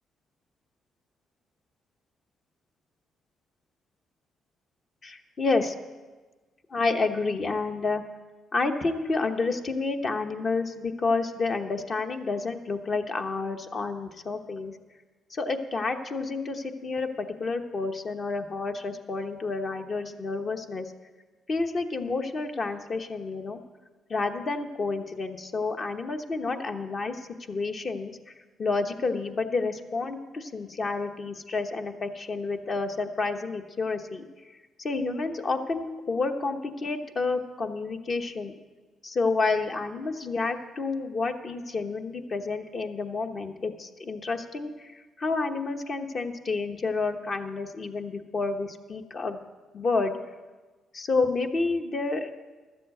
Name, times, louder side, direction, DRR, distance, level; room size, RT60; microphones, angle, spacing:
voice 1, 5.0-5.7 6.7-8.0 8.5-14.7 15.3-20.9 21.5-23.6 24.1-28.1 28.6-34.2 34.8-38.5 39.0-49.4 49.7-50.2 50.9-52.3, left 3 dB, 45° left, 6 dB, 1.0 m, -29 dB
12.5 x 7.6 x 7.7 m, 1.3 s
cardioid pair, 90°, 0 cm